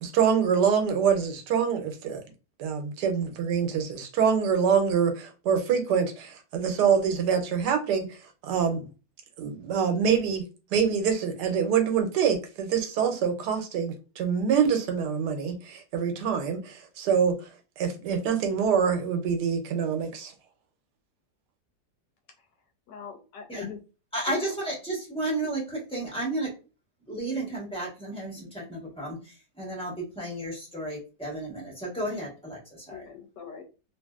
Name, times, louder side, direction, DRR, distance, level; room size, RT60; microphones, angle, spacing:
voice 1, 0.0-2.2 2.6-8.2 8.4-8.9 9.4-10.4 10.7-17.5 17.8-20.3, right 7 dB, 90° right, 1.2 m, -25 dB
voice 2, 22.9-23.8 24.3-24.5 32.9-33.6, left 7 dB, 85° left, 1.3 m, -41 dB
voice 3, 24.1-26.5 27.1-29.2 29.6-32.6 32.9-33.0, right 1 dB, 5° left, 1.1 m, -32 dB
2.9 x 2.6 x 2.3 m
omnidirectional pair, 1.8 m